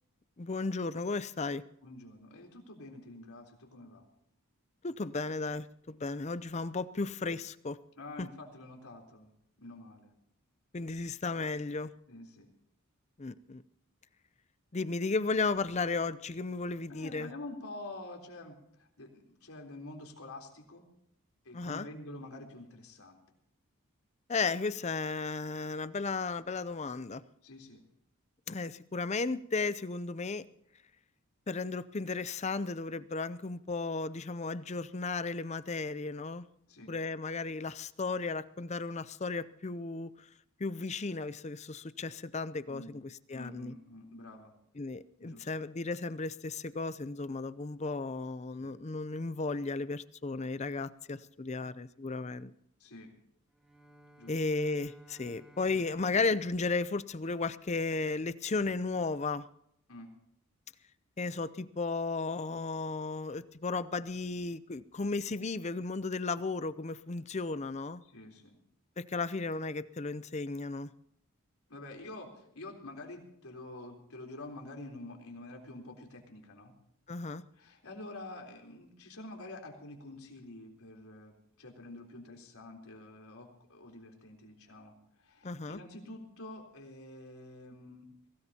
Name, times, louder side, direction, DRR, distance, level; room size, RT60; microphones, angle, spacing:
voice 1, 0.4-1.6 4.8-7.8 8.2-8.3 10.7-11.9 13.2-13.6 14.7-17.3 21.5-21.9 24.3-27.2 28.5-30.4 31.5-36.4 36.9-40.3 40.6-43.7 44.8-52.5 54.3-59.5 61.2-68.0 69.0-70.9 77.1-77.4 85.4-85.8, left 3 dB, 30° left, 15 dB, 0.5 m, -34 dB
voice 2, 1.8-4.1 8.0-9.3 9.6-10.1 12.1-12.5 16.9-20.8 21.4-23.2 27.4-27.8 36.7-36.9 42.7-43.0 43.3-44.5 45.2-45.5 48.6-48.7 52.8-53.1 54.2-54.4 59.9-60.1 68.0-68.6 71.7-76.8 77.5-88.1, left 2 dB, 75° left, 1 dB, 3.8 m, -47 dB
Bowed string instrument, 53.5-57.6, right 1 dB, 5° right, 1.5 m, -60 dB
23.0 x 18.0 x 2.9 m, 0.74 s
head